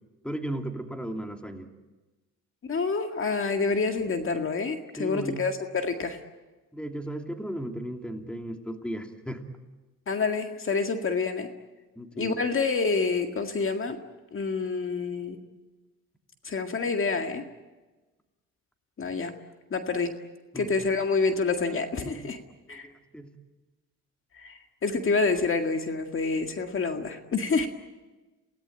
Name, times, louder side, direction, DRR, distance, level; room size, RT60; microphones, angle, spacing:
voice 1, 0.2-1.7 5.0-5.4 6.7-9.4 12.0-12.4 20.5-20.7 22.0-22.2 22.7-23.3, right 1 dB, 5° left, 4 dB, 2.8 m, -35 dB
voice 2, 2.6-6.2 10.1-11.5 12.2-14.0 14.3-15.4 16.4-17.4 19.0-19.3 19.7-20.1 20.6-22.4 22.7-22.9 24.4-27.7, left 4 dB, 45° left, 5 dB, 2.0 m, -27 dB
28.5 x 18.5 x 8.9 m, 1.2 s
cardioid pair, 90°, 30 cm